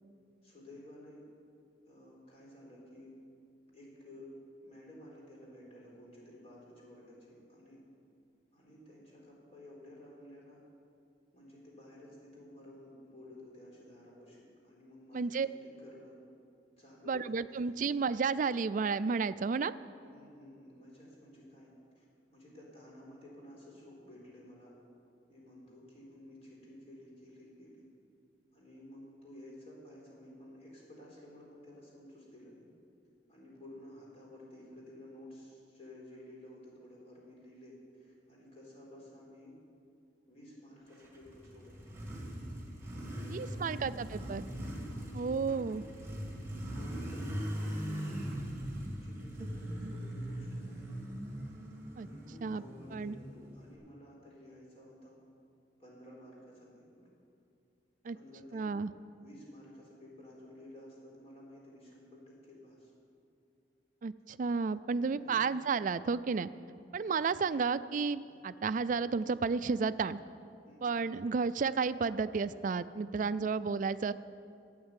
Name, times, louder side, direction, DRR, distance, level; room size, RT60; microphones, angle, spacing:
voice 1, 0.4-1.2 1.8-3.1 3.7-4.3 4.6-7.8 8.5-10.6 11.3-15.3 15.6-16.2 16.8-17.5 20.0-21.7 22.0-22.1 22.3-24.7 25.3-27.8 28.5-32.7 33.3-39.5 40.3-41.9 43.1-44.0 44.9-45.8 46.2-48.0 49.0-51.0 52.0-55.2 55.8-57.1 58.1-58.7 59.2-62.9 65.2-65.5 67.2-67.3 68.2-68.4 70.7-70.9 73.3-73.6, left 1 dB, 35° left, -4 dB, 3.9 m, -53 dB
voice 2, 15.1-15.5 17.1-19.7 43.3-44.4 45.1-45.8 49.8-49.9 52.0-52.1 52.4-52.6 52.9-53.1 58.0-58.2 58.5-58.9 64.0-66.5 66.9-70.2 70.8-74.1, right 5 dB, 45° right, 15 dB, 0.4 m, -32 dB
Motorcycle, 41.0-53.7, equal, 15° right, 2.0 m, -40 dB
12.5 x 8.8 x 8.3 m, 2.6 s
head